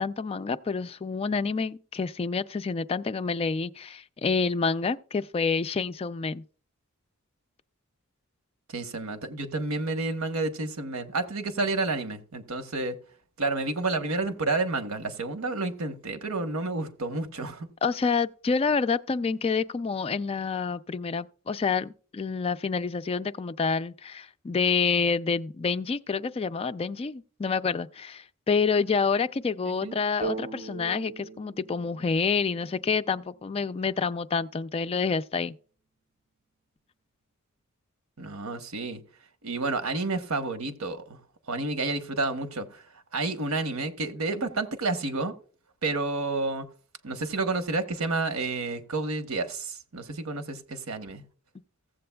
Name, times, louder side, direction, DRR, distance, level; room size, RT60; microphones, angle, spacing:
voice 1, 0.0-6.4 17.8-35.5, left 5 dB, 30° left, 0.3 m, -28 dB
voice 2, 8.7-13.0 13.4-17.7 29.8-29.9 38.2-39.0 39.4-41.0 41.5-42.8 43.1-45.3 45.8-46.7 47.0-51.2, right 3 dB, 80° right, 1.0 m, -30 dB
sound 1, 30.2-33.9, right 3 dB, 30° right, 0.5 m, -40 dB
15.5 x 7.7 x 2.2 m
head